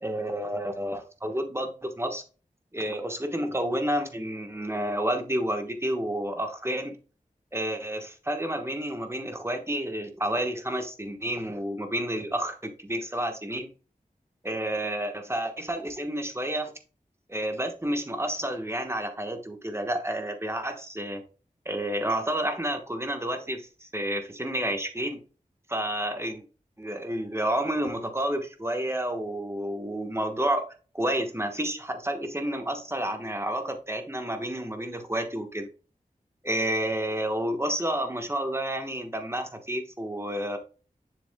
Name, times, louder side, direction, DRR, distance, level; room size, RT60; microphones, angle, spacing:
voice 1, 0.0-2.2 2.7-7.0 7.5-13.7 14.4-16.7 17.3-21.2 21.6-25.2 25.7-26.4 26.8-30.6 30.9-35.7 36.4-40.6, right 1 dB, 20° right, 5 dB, 1.3 m, -30 dB
7.0 x 6.9 x 2.3 m, 0.37 s
wide cardioid pair, 45°, 14 cm